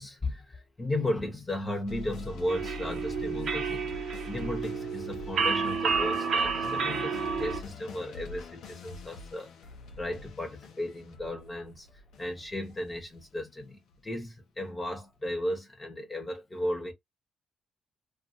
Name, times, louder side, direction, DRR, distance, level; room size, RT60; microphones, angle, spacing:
voice 1, 0.0-4.0 4.2-9.5 10.0-16.9, left 1 dB, 20° left, 1.0 m, -35 dB
sound 1, 1.9-14.3, left 2 dB, 80° left, 0.7 m, -44 dB
sound 2, 2.5-7.6, right 5 dB, 65° right, 0.8 m, -30 dB
2.6 x 2.5 x 2.7 m
cardioid pair, 90°, 0 cm